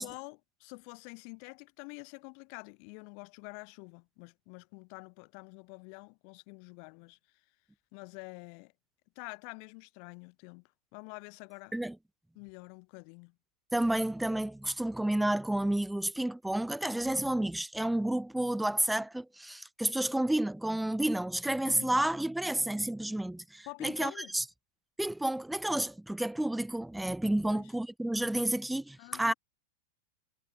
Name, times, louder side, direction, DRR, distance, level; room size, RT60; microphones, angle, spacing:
voice 1, 0.0-7.2 7.9-8.7 9.2-11.7 12.4-13.3 21.7-21.9 23.7-24.3 27.4-27.7 29.0-29.3, left 40 dB or more, 45° left, 5.7 m, -47 dB
voice 2, 13.7-24.4 25.0-29.3, right 1 dB, 5° right, 2.0 m, -30 dB
figure-of-eight pair, 90°, 0 cm